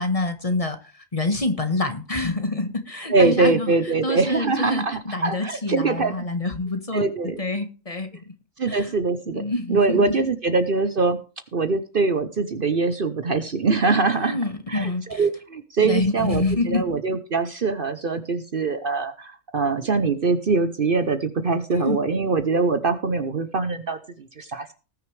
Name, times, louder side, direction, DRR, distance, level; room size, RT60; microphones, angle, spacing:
voice 1, 0.0-3.7 4.0-8.3 8.7-9.0 9.3-10.1 14.1-15.2 15.8-16.9 21.7-22.0, left 2 dB, 30° left, 7 dB, 1.4 m, -27 dB
voice 2, 3.1-6.3 6.9-7.4 8.6-9.4 9.7-11.2 11.5-14.4 14.7-24.7, right 4 dB, 45° right, 10 dB, 1.0 m, -23 dB
19.5 x 6.6 x 3.3 m, 0.35 s
omnidirectional pair, 1.3 m